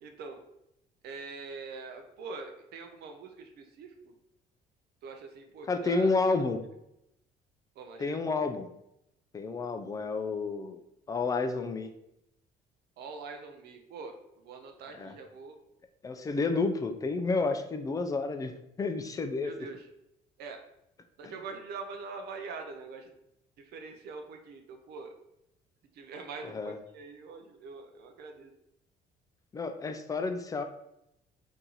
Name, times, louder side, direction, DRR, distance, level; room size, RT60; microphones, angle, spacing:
voice 1, 0.0-0.4 1.0-4.1 5.0-6.1 7.8-8.2 13.0-15.6 19.4-19.9 20.4-20.6 21.2-23.2 23.6-25.1 25.9-28.5, right 4 dB, 70° right, 5 dB, 0.5 m, -44 dB
voice 2, 5.7-6.7 8.0-8.7 9.3-10.8 11.1-11.9 15.0-15.2 16.0-19.5 26.4-26.8 29.5-30.6, left 3 dB, 20° left, 6 dB, 0.3 m, -30 dB
2.9 x 2.7 x 3.8 m, 0.82 s
cardioid pair, 110°, 17 cm